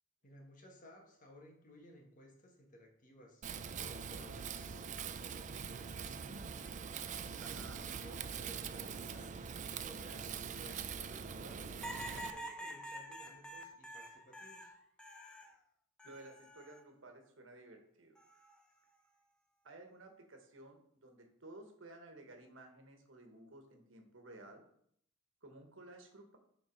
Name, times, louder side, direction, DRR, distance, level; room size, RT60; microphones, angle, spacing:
voice 1, 0.2-3.4 3.8-6.9 7.3-11.8 12.1-14.7, equal, 40° left, 1 dB, 1.5 m, -58 dB
Wind, 3.4-12.3, right 6 dB, 40° right, 0.4 m, -43 dB
voice 2, 7.4-7.8 16.0-18.2 19.6-24.6 25.4-26.4, right 2 dB, 75° right, 4 dB, 1.3 m, -55 dB
sound 1, 11.8-15.5 16.0-16.8 18.2-18.6, right 1 dB, 5° left, 0.7 m, -47 dB
7.2 x 4.0 x 5.3 m, 0.67 s
head